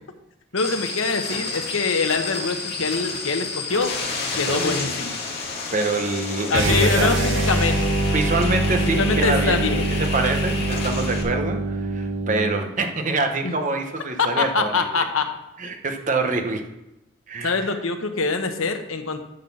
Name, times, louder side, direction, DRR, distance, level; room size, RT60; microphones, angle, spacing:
voice 1, 0.5-3.9 4.4-5.2 6.5-8.0 9.0-9.9 13.4-13.5 14.2-15.3 17.4-19.2, left 4 dB, 85° left, 6 dB, 1.0 m, -24 dB
sound 1, 0.6-11.2, left 4 dB, 50° left, 2.1 m, -30 dB
voice 2, 4.3-4.9 5.7-7.1 8.1-9.6 9.9-15.0 15.6-16.7 17.3-17.7, right 3 dB, 40° right, 5 dB, 0.9 m, -25 dB
sound 2, 6.5-12.7, right 1 dB, 65° right, 1.1 m, -24 dB
11.0 x 4.0 x 7.1 m, 0.96 s
head